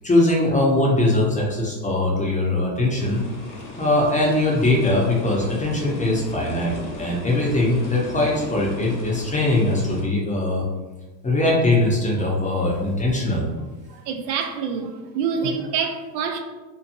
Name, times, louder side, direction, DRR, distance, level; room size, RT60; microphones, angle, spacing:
voice 1, 0.0-3.2 3.8-10.6 11.2-13.4, left 2 dB, 15° left, -3 dB, 0.7 m, -21 dB
sound 1, 3.0-10.0, left 2 dB, 80° left, 1.0 m, -36 dB
voice 2, 13.9-16.4, right 6 dB, 75° right, 5 dB, 0.6 m, -26 dB
2.9 x 2.5 x 2.6 m, 1.2 s
hypercardioid pair, 90°, 50 cm